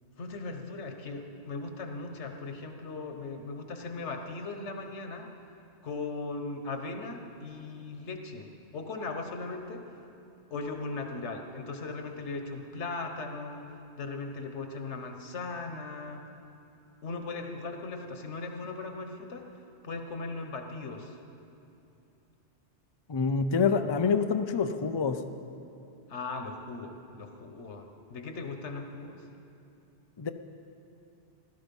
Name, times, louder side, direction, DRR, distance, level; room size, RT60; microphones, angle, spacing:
voice 1, 0.2-5.3 5.8-9.8 10.5-16.2 17.0-19.4 19.8-21.2 26.1-29.2, left 3 dB, 75° left, 5 dB, 1.4 m, -38 dB
voice 2, 23.1-25.2 30.2-30.3, left 5 dB, 40° left, 8 dB, 0.4 m, -26 dB
16.0 x 12.5 x 5.4 m, 2.8 s
omnidirectional pair, 1.2 m